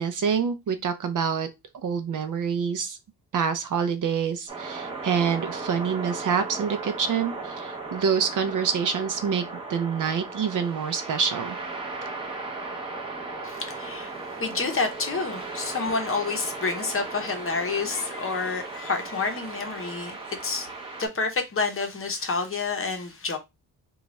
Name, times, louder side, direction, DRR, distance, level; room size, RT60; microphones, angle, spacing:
voice 1, 0.0-1.5 1.8-3.0 3.3-9.4 9.7-11.6, right 6 dB, 50° right, 0.5 m, -26 dB
sound 1, 4.5-21.1, right 3 dB, 15° right, 0.7 m, -36 dB
voice 2, 13.4-20.7 21.0-23.4, left 4 dB, 35° left, 0.8 m, -29 dB
3.9 x 2.4 x 3.0 m
wide cardioid pair, 155°, 40 cm